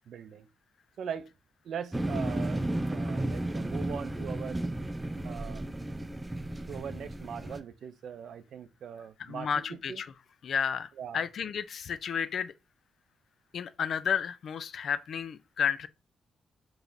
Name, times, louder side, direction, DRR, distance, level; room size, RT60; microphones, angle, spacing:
voice 1, 0.1-0.5 1.0-1.3 1.6-2.6 2.9-4.6 5.2-5.6 6.7-10.0 11.0-11.2, right 8 dB, 70° right, 0.4 m, -40 dB
sound 1, 1.9-7.6, right 1 dB, 15° right, 0.5 m, -33 dB
voice 2, 9.2-10.1 10.4-12.5 13.5-15.9, left 7 dB, 65° left, 0.4 m, -32 dB
4.8 x 3.1 x 2.6 m
cardioid pair, 75°, 0 cm